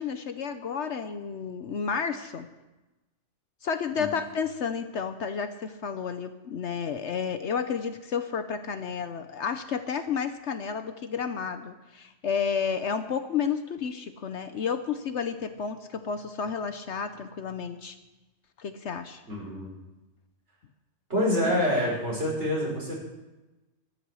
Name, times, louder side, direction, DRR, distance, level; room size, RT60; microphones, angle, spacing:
voice 1, 0.0-2.5 3.6-18.0 18.6-19.2, left 6 dB, 60° left, 9 dB, 1.0 m, -31 dB
voice 2, 19.3-19.7 21.1-22.9, left 1 dB, 55° right, -4 dB, 6.1 m, -26 dB
13.5 x 13.0 x 6.3 m, 1.1 s
omnidirectional pair, 1.4 m